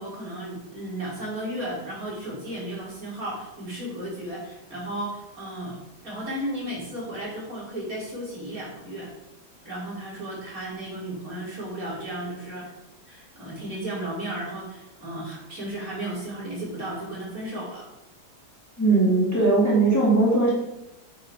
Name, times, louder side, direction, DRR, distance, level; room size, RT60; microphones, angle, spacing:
voice 1, 0.0-5.8 6.0-9.1 9.6-12.7 13.1-17.8, right 1 dB, 55° right, -7 dB, 4.4 m, -34 dB
voice 2, 18.8-20.5, right 3 dB, 10° left, -5 dB, 2.4 m, -19 dB
9.8 x 6.4 x 4.8 m, 0.92 s
omnidirectional pair, 1.9 m